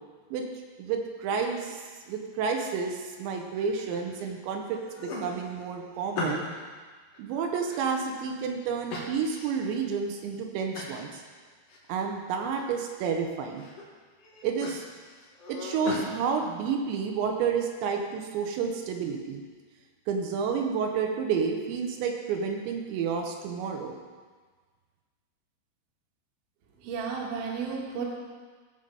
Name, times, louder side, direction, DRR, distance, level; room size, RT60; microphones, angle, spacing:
voice 1, 0.8-6.4 7.2-11.2 11.9-13.7 14.4-14.9 15.5-19.4 20.1-24.0, right 6 dB, 85° right, 3 dB, 3.1 m, -30 dB
sound 1, 3.5-4.3 4.7-6.7 7.1-8.3 8.9-9.7 10.1-10.2 10.7-11.1 11.4-12.1 12.4-12.9 13.4-13.8 14.2-16.1, left 2 dB, 75° left, 1.3 m, -39 dB
voice 2, 26.8-28.0, right 5 dB, 60° right, -2 dB, 2.5 m, -33 dB
15.0 x 5.1 x 5.3 m, 1.5 s
omnidirectional pair, 5.1 m